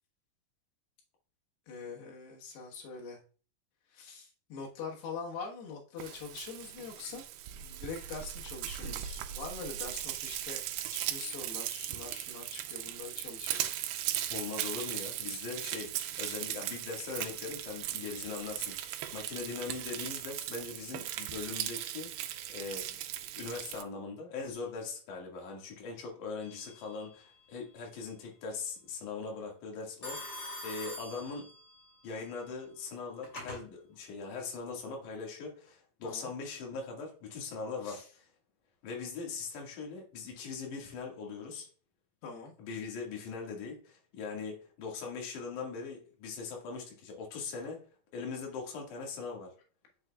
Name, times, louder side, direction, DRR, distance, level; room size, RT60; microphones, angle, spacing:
voice 1, 1.7-3.2 3.9-7.2 7.5-10.6 10.9-13.7 36.0-36.3 37.8-38.1 42.2-42.6, left 5 dB, 90° left, -1 dB, 3.5 m, -43 dB
Frying (food), 6.0-23.8, right 12 dB, 80° right, 2.4 m, -38 dB
voice 2, 14.3-15.9 16.2-22.1 22.5-23.0 23.4-31.5 32.0-38.3 38.8-41.7 42.6-47.9 48.1-49.5, left 4 dB, 55° left, -1 dB, 3.1 m, -41 dB
Telephone, 26.4-26.9 30.0-31.9 32.9-33.6, left 1 dB, 30° left, 2.9 m, -44 dB
9.4 x 6.8 x 2.3 m, 0.40 s
omnidirectional pair, 4.6 m